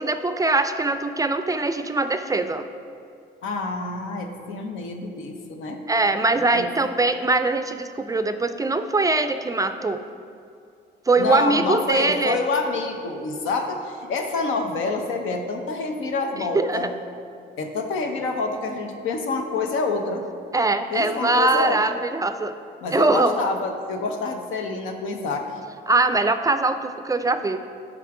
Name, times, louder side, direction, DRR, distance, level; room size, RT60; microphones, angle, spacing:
voice 1, 0.0-2.7 5.9-10.0 11.1-12.4 16.4-16.9 20.5-22.5 22.9-23.4 25.9-27.6, right 3 dB, 15° right, 9 dB, 0.3 m, -22 dB
voice 2, 3.4-5.8 6.4-6.7 11.2-16.9 17.6-20.3 20.9-21.9 22.8-25.5, left 3 dB, 85° left, 4 dB, 0.8 m, -27 dB
9.4 x 3.8 x 4.7 m, 2.4 s
cardioid pair, 90°, 20 cm